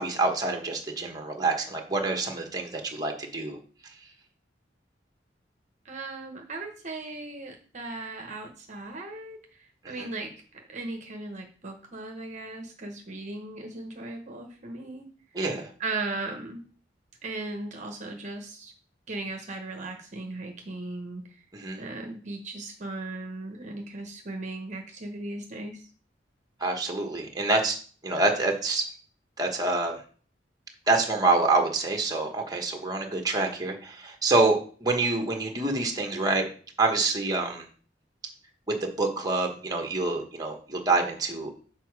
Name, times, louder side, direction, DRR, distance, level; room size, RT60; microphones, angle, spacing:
voice 1, 0.0-3.6 10.0-10.1 15.3-15.7 21.5-21.8 26.6-27.8 28.0-28.9 29.4-29.9 30.9-36.4 36.8-37.6 38.7-41.5, right 3 dB, 20° right, 3 dB, 1.1 m, -26 dB
voice 2, 5.8-15.1 15.8-16.6 17.2-18.7 19.1-21.4 21.8-25.8, right 2 dB, 40° right, 3 dB, 1.0 m, -37 dB
6.9 x 4.6 x 4.7 m, 0.43 s
head